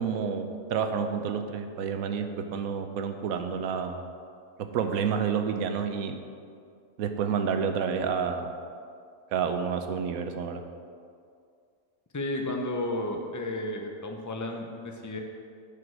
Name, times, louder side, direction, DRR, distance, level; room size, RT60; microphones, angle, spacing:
voice 1, 0.0-4.0 4.6-6.2 7.0-8.5 9.3-10.6, right 6 dB, 75° right, 7 dB, 1.1 m, -29 dB
voice 2, 12.1-15.2, left 1 dB, 25° left, 2 dB, 0.4 m, -32 dB
7.7 x 5.1 x 6.2 m, 2.3 s
omnidirectional pair, 1.5 m